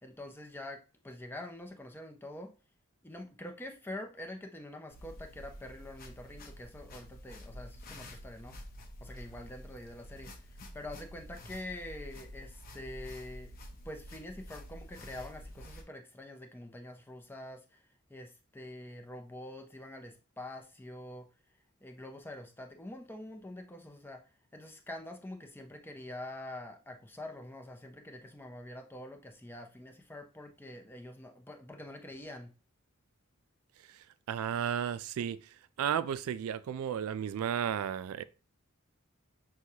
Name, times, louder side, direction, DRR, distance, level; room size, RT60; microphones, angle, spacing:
voice 1, 0.0-2.5 3.0-8.6 9.0-13.5 13.8-21.3 21.8-24.2 24.5-32.5, left 1 dB, 10° left, 0.6 m, -45 dB
sound 1, 4.9-15.8, equal, 45° left, 0.7 m, -49 dB
voice 2, 33.9-38.2, right 8 dB, 80° right, 0.3 m, -34 dB
6.2 x 2.3 x 2.8 m
head